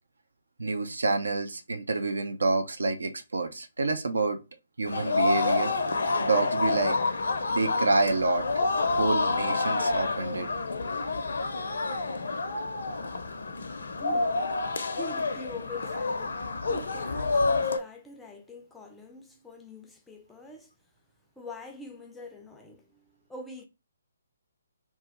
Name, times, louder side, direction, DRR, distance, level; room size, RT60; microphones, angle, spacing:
voice 1, 0.6-4.4 4.8-5.7 6.2-7.0 7.5-8.7 9.0-10.5, right 3 dB, 70° right, 0.5 m, -28 dB
sound 1, 4.8-17.8, left 3 dB, 60° left, 0.5 m, -28 dB
voice 2, 14.0-14.6 14.9-20.7 21.4-23.7, left 2 dB, 5° left, 0.4 m, -44 dB
2.9 x 2.4 x 4.1 m
figure-of-eight pair, 135°, 0 cm